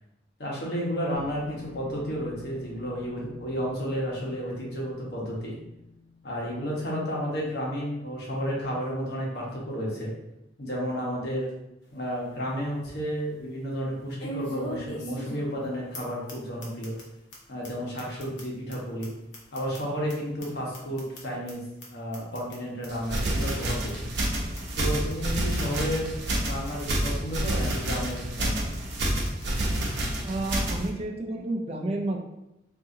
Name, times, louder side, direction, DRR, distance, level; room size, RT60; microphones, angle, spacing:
voice 1, 0.4-5.5 6.2-10.1 10.6-11.5 11.9-16.9 17.5-19.1 19.5-21.6 21.9-24.1 24.8-28.7, equal, 65° left, -4 dB, 1.1 m, -32 dB
sound 1, 1.1-7.2, left 5 dB, 40° left, 0.4 m, -49 dB
sound 2, 11.8-11.9 12.4-12.5 14.2-15.7 15.9-16.0 16.3-16.4 16.6-17.0 17.3-17.4 17.6-17.7 18.0-20.1 20.4-21.5 21.8-21.9 22.1-22.6 22.8-22.9 23.2-23.3 23.5-23.9 24.2-24.3 24.6-24.7 24.9-25.3 25.6-25.7 25.9-26.0 26.3-26.7 27.0-27.1 27.3-27.4 27.7-28.1 28.4-28.5 28.7-28.8 29.0-29.5, equal, 85° left, 0.9 m, -40 dB
sound 3, 22.9-30.9, right 1 dB, 80° right, 0.7 m, -29 dB
voice 2, 30.2-32.2, right 2 dB, 35° right, 2 dB, 0.4 m, -30 dB
2.7 x 2.7 x 3.7 m, 0.88 s
head